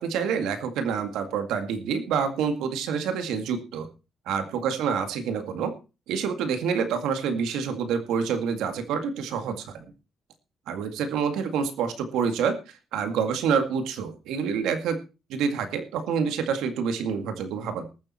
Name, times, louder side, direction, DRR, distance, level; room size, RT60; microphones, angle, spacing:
voice 1, 0.0-3.9 4.3-5.7 6.1-9.7 10.7-12.6 12.9-15.0 15.3-17.9, right 6 dB, 90° right, 8 dB, 2.1 m, -27 dB
19.0 x 7.4 x 4.3 m, 0.31 s
cardioid pair, 90°, 0 cm